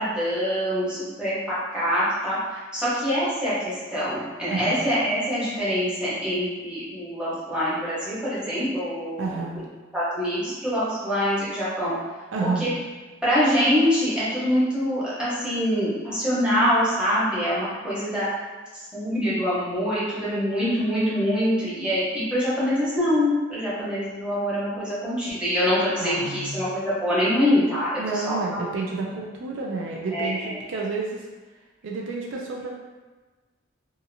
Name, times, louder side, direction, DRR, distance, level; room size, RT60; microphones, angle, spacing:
voice 1, 0.0-9.4 9.9-11.9 12.4-12.7 13.2-18.3 18.7-28.6 30.1-30.6, equal, 5° right, -11 dB, 1.0 m, -25 dB
voice 2, 4.5-4.8 9.2-9.6 12.3-12.7 26.0-26.6 28.0-31.2 31.8-32.7, right 3 dB, 70° right, -2 dB, 0.4 m, -30 dB
2.8 x 2.4 x 2.6 m, 1.3 s
head